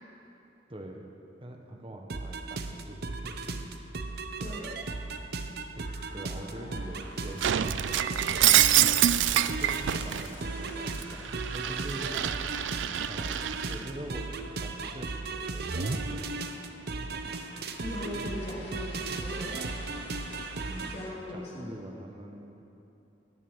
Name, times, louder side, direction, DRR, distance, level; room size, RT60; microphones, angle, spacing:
voice 1, 0.7-1.1 1.4-3.6 5.8-5.9 6.1-12.1 12.7-14.3 14.6-16.3 17.0-17.1 20.6-22.6, right 1 dB, 30° right, 2 dB, 1.3 m, -44 dB
sound 1, 2.1-21.0, right 3 dB, 60° right, 0.7 m, -36 dB
sound 2, 4.0-5.0 5.8-15.2 16.1-21.1, left 2 dB, 90° left, 2.0 m, -51 dB
voice 2, 4.4-4.7 17.8-19.6 20.9-21.7, left 1 dB, 35° left, -5 dB, 2.9 m, -39 dB
Shatter, 7.4-10.3 10.7-13.8, right 12 dB, 80° right, 0.4 m, -26 dB
18.5 x 7.3 x 6.4 m, 2.9 s
head